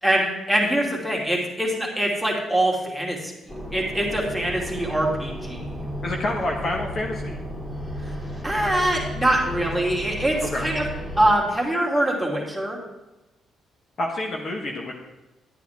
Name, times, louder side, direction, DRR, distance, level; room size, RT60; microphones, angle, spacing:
voice 1, 0.0-3.3 3.7-5.6 8.0-8.1 8.4-10.9 11.2-12.8, right 1 dB, ahead, -2 dB, 2.6 m, -23 dB
sound 1, 3.5-11.3, equal, 20° left, 2.8 m, -33 dB
voice 2, 6.0-7.4 10.5-10.7 14.0-14.9, left 1 dB, 50° left, 0 dB, 1.5 m, -28 dB
11.0 x 9.2 x 3.6 m, 1.0 s
cardioid pair, 90°, 0 cm